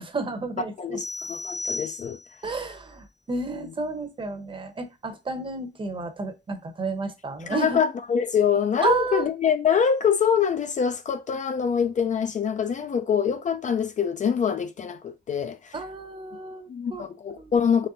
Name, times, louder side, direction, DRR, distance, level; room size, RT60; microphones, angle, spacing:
voice 1, 0.0-1.0 2.4-7.8 8.8-9.2 15.7-17.0 17.4-17.5, right 3 dB, 30° right, 0.9 m, -31 dB
voice 2, 0.8-2.2 3.6-3.7 7.5-15.8 16.7-17.9, left 7 dB, 40° left, 0.4 m, -25 dB
sound 1, 1.0-2.5, left 2 dB, 20° left, 0.8 m, -34 dB
4.1 x 3.2 x 3.8 m
cardioid pair, 135°, 19 cm